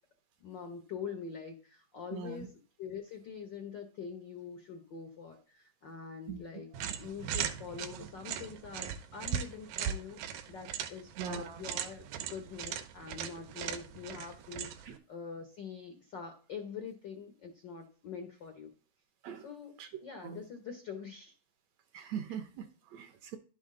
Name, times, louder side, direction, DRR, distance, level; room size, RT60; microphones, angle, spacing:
voice 1, 0.4-6.7 7.0-18.7 19.3-19.7 20.0-21.3, left 6 dB, 85° left, 6 dB, 1.0 m, -44 dB
voice 2, 2.1-2.5 6.3-6.4 6.7-6.8 11.2-11.6 14.8-14.9 19.2-19.4 19.8-19.9 20.2-20.4 21.9-23.4, right 7 dB, 70° right, 8 dB, 1.7 m, -41 dB
sound 1, 6.7-15.0, right 9 dB, 90° right, 2.4 m, -39 dB
11.0 x 6.2 x 3.7 m, 0.40 s
omnidirectional pair, 3.7 m